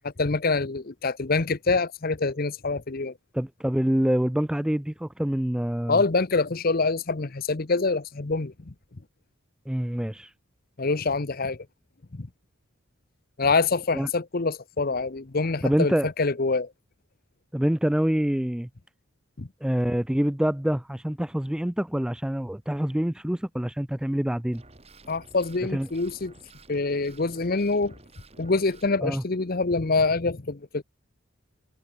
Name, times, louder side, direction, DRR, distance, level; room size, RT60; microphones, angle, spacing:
voice 1, 0.0-3.1 5.9-8.7 10.8-11.6 12.1-12.3 13.4-16.7 19.4-19.5 25.1-26.3 26.7-27.9 28.4-30.8, left 3 dB, 45° left, 0.8 m, -25 dB
voice 2, 3.3-6.0 9.7-10.3 13.9-14.1 15.6-16.1 17.5-18.7 19.6-24.6 25.7-25.9 29.0-29.2, equal, 5° right, 0.3 m, -26 dB
sound 1, 24.5-28.9, right 2 dB, 30° right, 3.5 m, -52 dB
head